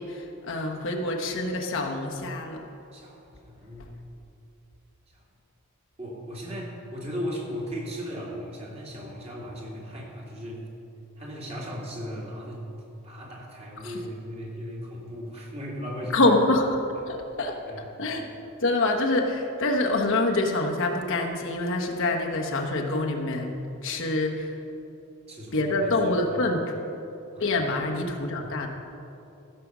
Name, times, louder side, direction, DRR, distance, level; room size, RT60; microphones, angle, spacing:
voice 1, 0.0-2.6 13.8-14.0 16.1-16.8 17.1-17.6 18.0-18.3 18.6-24.5 25.5-26.7 27.4-28.7, left 2 dB, 60° left, 1 dB, 1.2 m, -26 dB
voice 2, 2.9-3.9 5.1-5.2 6.0-10.6 11.2-12.6 13.0-16.2 17.1-17.2 17.6-17.8 25.3-26.1 27.3-27.6, equal, 30° right, -3 dB, 2.4 m, -37 dB
15.0 x 6.8 x 6.0 m, 2.8 s
head